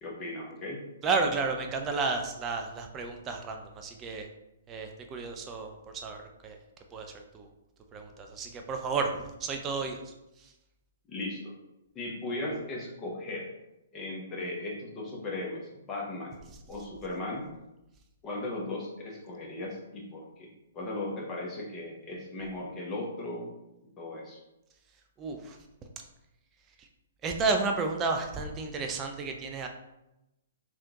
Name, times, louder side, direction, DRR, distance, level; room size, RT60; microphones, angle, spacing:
voice 1, 0.0-0.8 11.1-11.6 11.9-13.5 13.9-16.4 16.7-17.5 18.2-23.5 24.0-24.4, left 2 dB, 25° left, -2 dB, 0.9 m, -37 dB
voice 2, 1.0-4.3 4.7-6.6 6.9-7.5 7.9-9.1 9.4-10.5 25.2-25.6 26.8-26.9 27.2-29.7, right 4 dB, 20° right, 4 dB, 0.4 m, -32 dB
3.5 x 2.4 x 2.8 m, 0.91 s
figure-of-eight pair, 125°, 0 cm